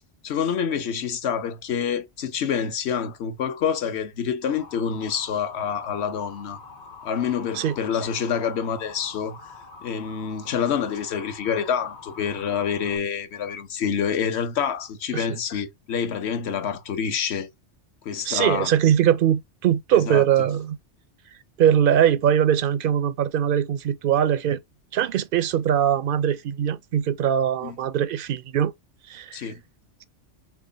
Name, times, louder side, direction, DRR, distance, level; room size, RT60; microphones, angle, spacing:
voice 1, 0.2-6.6 7.0-9.4 9.8-17.5 18.0-18.7 20.1-20.2 27.6-27.8 29.3-29.6, left 7 dB, 65° left, 1.1 m, -27 dB
Motor vehicle (road) / Siren, 4.4-13.0, left 4 dB, 40° left, 1.0 m, -44 dB
voice 2, 18.2-20.8 21.6-24.6 24.9-28.7 29.1-29.5, right 10 dB, 60° right, 0.6 m, -21 dB
6.0 x 2.3 x 3.9 m
omnidirectional pair, 1.2 m